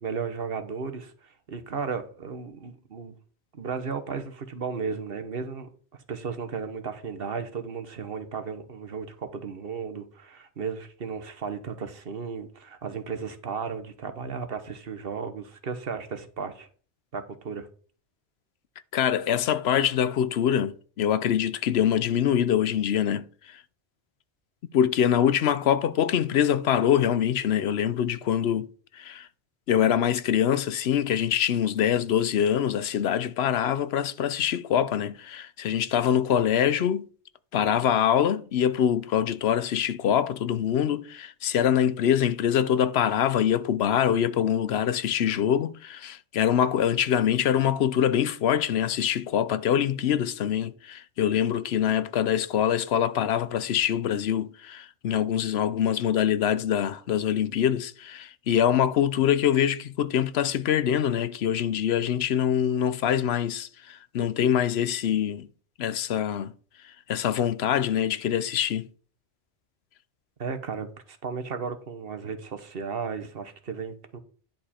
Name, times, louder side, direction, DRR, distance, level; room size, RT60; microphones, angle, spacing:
voice 1, 0.0-3.1 3.5-5.7 6.1-16.7 17.1-17.7 70.4-74.2, right 5 dB, 55° right, 1.2 m, -34 dB
voice 2, 18.9-23.6 24.7-28.7 28.9-29.3 29.7-37.1 37.5-65.5 65.8-66.5 67.1-68.9, left 9 dB, 65° left, 0.8 m, -24 dB
10.5 x 4.9 x 4.3 m
omnidirectional pair, 1.2 m